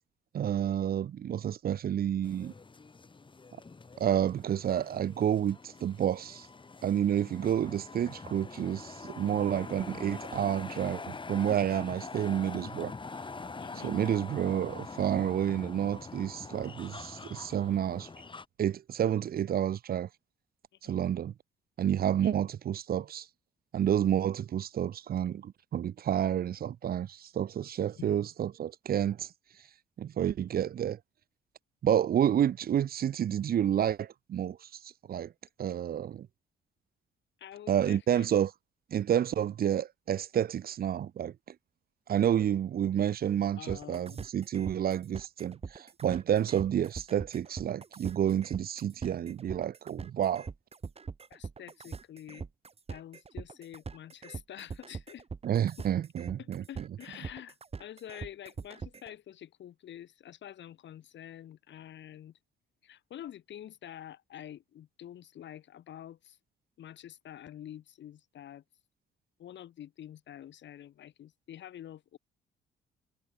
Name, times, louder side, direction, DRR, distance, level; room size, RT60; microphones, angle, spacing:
voice 1, 0.3-2.5 4.0-6.5 6.8-12.9 13.8-18.1 18.6-20.1 20.8-21.3 21.8-23.3 23.7-29.3 30.0-31.0 31.8-34.6 35.1-35.3 35.6-36.3 37.7-38.5 38.9-41.3 42.1-50.5 55.4-56.8, right 10 dB, 50° right, 0.6 m, -29 dB
sound 1, 2.2-18.4, left 4 dB, 25° left, 1.8 m, -44 dB
voice 2, 13.6-14.0 20.8-21.0 22.1-22.4 28.0-28.2 37.4-38.3 43.6-44.2 51.3-52.5 52.9-55.2 55.8-55.9 56.4-62.4 62.8-66.4 66.8-68.6 69.4-72.2, left 11 dB, 65° left, 1.6 m, -47 dB
sound 2, 43.7-59.1, right 5 dB, 30° right, 1.5 m, -42 dB
cardioid pair, 90°, 20 cm